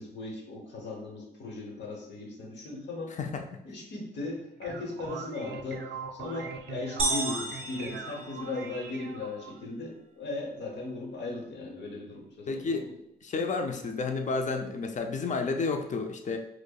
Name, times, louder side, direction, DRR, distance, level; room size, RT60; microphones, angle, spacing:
voice 1, 0.0-3.1 3.6-5.8 6.1-12.9, left 3 dB, 80° left, 0 dB, 0.9 m, -37 dB
sound 1, 4.3-9.6, right 6 dB, 70° right, 0.4 m, -41 dB
sound 2, 7.0-9.0, right 2 dB, 30° right, 0.7 m, -33 dB
voice 2, 12.5-12.8 13.2-16.4, left 4 dB, 45° left, 5 dB, 0.5 m, -31 dB
4.8 x 2.1 x 2.3 m, 0.82 s
cardioid pair, 65°, 18 cm